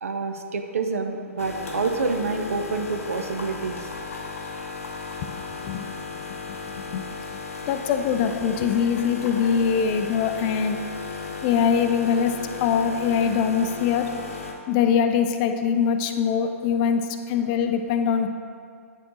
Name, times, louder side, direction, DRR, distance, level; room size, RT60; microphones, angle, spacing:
voice 1, 0.0-3.9, right 4 dB, 70° right, 6 dB, 0.6 m, -27 dB
sound 1, 1.4-14.5, left 4 dB, 70° left, 0.8 m, -35 dB
voice 2, 7.6-10.8 11.4-14.1 14.7-18.3, left 7 dB, 35° left, 7 dB, 0.4 m, -23 dB
8.5 x 5.0 x 3.0 m, 2.1 s
figure-of-eight pair, 115°, 8 cm